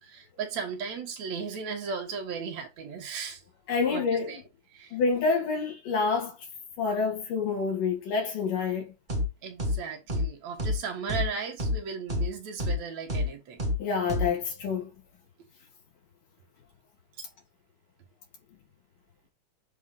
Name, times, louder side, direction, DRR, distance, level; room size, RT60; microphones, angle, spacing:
voice 1, 0.0-3.4 3.9-4.4 4.7-5.0 9.4-13.6 17.2-17.3, right 5 dB, 60° right, 2.7 m, -36 dB
voice 2, 3.7-4.4 4.9-6.4 6.8-8.9 13.8-14.9, left 5 dB, 85° left, 4.4 m, -27 dB
sound 1, 9.1-9.3 9.6-9.8 10.1-10.3 10.6-10.8 11.1-11.3 11.6-11.8 12.1-12.3 12.6-12.8 13.1-13.3 13.6-13.8 14.1-14.3, left 1 dB, 35° right, 0.7 m, -27 dB
8.7 x 3.7 x 4.0 m
omnidirectional pair, 3.7 m